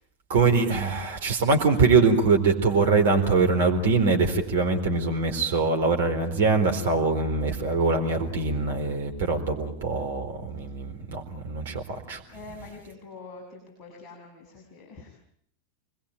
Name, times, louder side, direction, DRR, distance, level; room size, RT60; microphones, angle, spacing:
voice 1, 0.3-12.2, right 4 dB, 55° right, 5 dB, 4.2 m, -23 dB
voice 2, 9.1-9.6 12.3-15.1, left 3 dB, 30° left, 0 dB, 7.3 m, -45 dB
28.0 x 21.0 x 9.1 m, 0.68 s
figure-of-eight pair, 90°, 0 cm